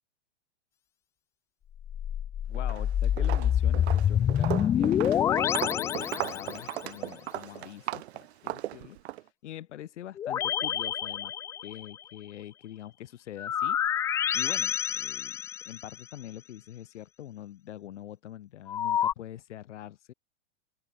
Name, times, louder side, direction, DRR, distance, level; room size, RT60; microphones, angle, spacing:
sound 1, 1.8-6.8 10.2-12.0 13.4-16.0 18.7-19.1, left 9 dB, 10° left, 0.4 m, -27 dB
voice 1, 2.5-9.2 9.4-11.3 11.6-13.8 14.3-15.4 15.6-20.1, left 12 dB, 65° left, 5.1 m, -44 dB
Walk footsteps, 2.5-2.9 3.2-9.2, right 16 dB, 55° right, 1.0 m, -36 dB
open air
hypercardioid pair, 140°, 38 cm